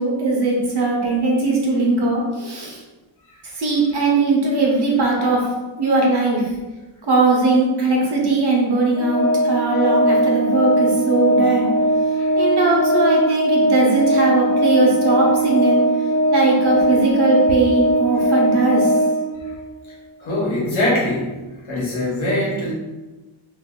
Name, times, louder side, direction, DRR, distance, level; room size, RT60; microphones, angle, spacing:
voice 1, 0.0-2.8 3.5-5.5 5.8-6.5 7.1-11.7 12.3-15.8 16.3-18.9, right 2 dB, 50° right, -2 dB, 0.9 m, -19 dB
Organ, 9.0-19.7, right 1 dB, 5° left, 0.3 m, -19 dB
voice 2, 20.2-21.3 21.7-22.7, left 1 dB, 70° left, -4 dB, 1.1 m, -22 dB
2.7 x 2.4 x 3.6 m, 1.1 s
wide cardioid pair, 140°, 49 cm